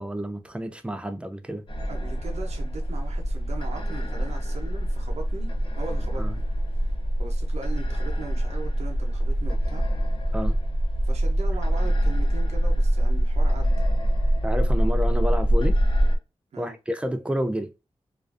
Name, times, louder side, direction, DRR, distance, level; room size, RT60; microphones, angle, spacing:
voice 1, 0.0-1.6 6.2-6.3 10.3-10.6 14.4-15.8 16.6-17.7, equal, 10° right, 0.3 m, -29 dB
sound 1, 1.7-16.2, equal, 50° left, 0.6 m, -24 dB
voice 2, 1.9-5.5 5.8-6.4 7.2-9.8 11.0-13.9 16.5-16.8, right 3 dB, 90° right, 0.6 m, -39 dB
2.4 x 2.3 x 2.4 m
wide cardioid pair, 110°, 11 cm